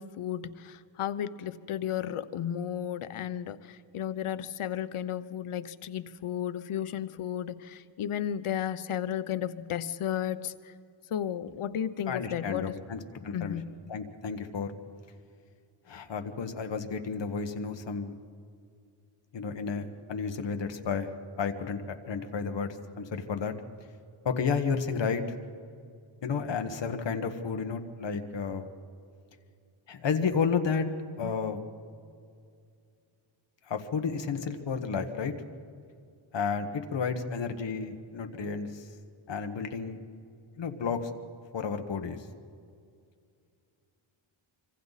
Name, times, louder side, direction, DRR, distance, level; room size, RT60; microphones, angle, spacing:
voice 1, 0.0-10.7 11.1-12.8 13.2-13.8 31.2-31.3, left 10 dB, 90° left, 13 dB, 0.9 m, -34 dB
voice 2, 12.1-13.6 13.9-14.7 15.9-18.2 19.3-21.1 21.4-23.5 24.2-25.2 26.2-28.7 29.9-30.9 31.2-31.6 33.7-35.3 36.3-38.9 39.3-40.0 40.6-41.1 41.5-42.3, left 5 dB, 60° left, 6 dB, 1.5 m, -32 dB
25.5 x 25.5 x 4.1 m, 2.4 s
wide cardioid pair, 160°, 49 cm